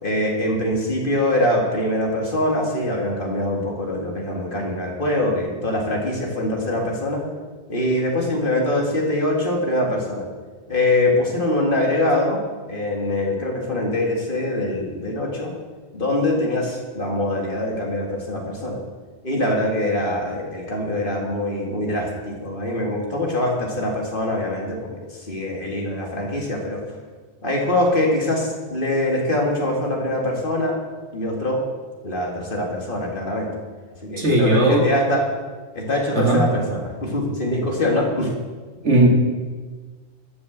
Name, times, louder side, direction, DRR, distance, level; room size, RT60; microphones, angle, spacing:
voice 1, 0.0-7.2 7.7-10.3 10.7-12.4 12.7-15.5 15.9-18.8 19.2-26.8 27.4-30.8 31.1-31.6 32.0-33.5 34.0-35.3 35.7-38.3, left 1 dB, 50° left, -1 dB, 2.3 m, -23 dB
voice 2, 34.2-34.9 36.1-36.5 38.8-39.1, right 2 dB, 90° right, -1 dB, 2.5 m, -17 dB
12.5 x 6.3 x 7.4 m, 1.4 s
omnidirectional pair, 1.1 m